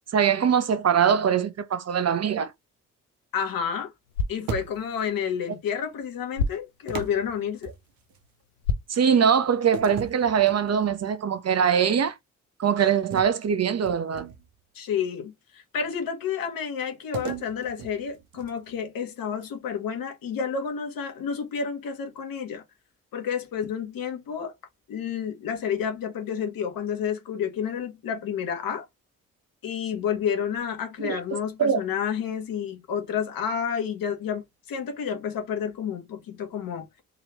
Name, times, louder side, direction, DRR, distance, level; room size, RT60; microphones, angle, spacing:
voice 1, 0.0-2.5 8.9-12.1 12.6-14.3 31.0-31.2 31.6-31.8, right 7 dB, 45° right, 0.8 m, -22 dB
voice 2, 3.3-3.9 4.3-7.7 14.7-22.6 23.1-24.5 24.9-28.9 29.6-36.9, left 7 dB, 65° left, 1.4 m, -30 dB
sound 1, 4.0-10.0, left 4 dB, 90° left, 0.6 m, -35 dB
sound 2, 4.5-5.1 6.9-8.2 9.7-11.1 11.5-11.8 13.1-14.6 17.1-18.8, right 6 dB, 65° right, 1.1 m, -38 dB
3.7 x 3.1 x 3.0 m
hypercardioid pair, 45°, 37 cm